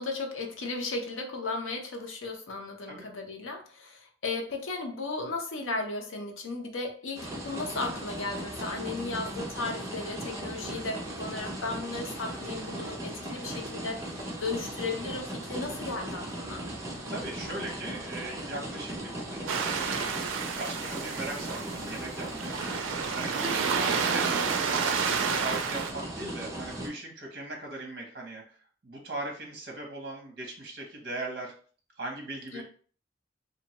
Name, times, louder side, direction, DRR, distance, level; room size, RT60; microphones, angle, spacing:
voice 1, 0.0-16.6 32.5-32.6, left 3 dB, 90° left, 2 dB, 0.6 m, -35 dB
sound 1, 7.1-26.9, right 1 dB, 15° right, 0.6 m, -38 dB
voice 2, 17.1-20.0 20.6-22.6 23.1-28.6 28.8-31.5 32.0-32.6, right 2 dB, 50° right, 0 dB, 0.7 m, -39 dB
sound 2, 19.5-25.9, right 6 dB, 85° right, 0.4 m, -30 dB
2.7 x 2.2 x 2.8 m, 0.42 s
head